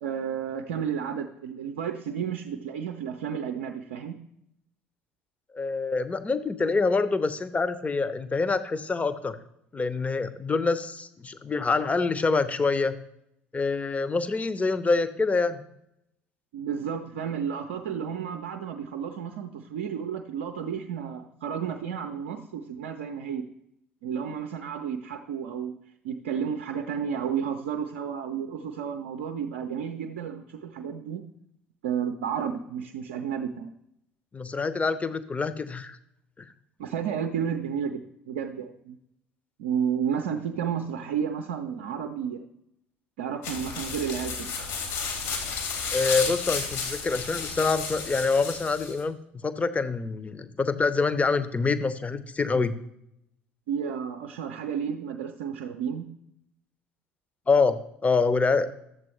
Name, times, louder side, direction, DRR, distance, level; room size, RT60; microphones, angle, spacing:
voice 1, 0.0-4.2 16.5-23.5 24.0-25.8 26.0-31.2 31.8-33.7 36.8-39.0 39.6-42.4 43.2-44.5 53.7-56.1, right 7 dB, 65° right, 5 dB, 0.5 m, -32 dB
voice 2, 5.5-9.4 9.7-13.0 13.5-15.6 34.3-36.0 36.4-36.5 45.9-49.2 49.4-52.7 57.5-58.7, left 4 dB, 20° left, 13 dB, 0.7 m, -26 dB
sound 1, 43.4-49.0, left 5 dB, 60° left, 1.9 m, -32 dB
12.0 x 7.5 x 3.1 m, 0.79 s
figure-of-eight pair, 55°, 6 cm